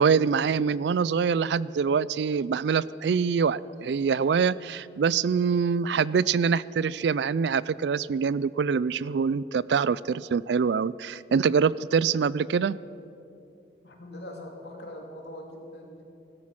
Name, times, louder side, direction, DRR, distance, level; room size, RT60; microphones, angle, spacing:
voice 1, 0.0-12.8, right 6 dB, 80° right, 20 dB, 0.4 m, -24 dB
voice 2, 13.8-16.1, left 1 dB, 75° left, 1 dB, 2.5 m, -42 dB
16.5 x 13.5 x 5.9 m, 2.7 s
head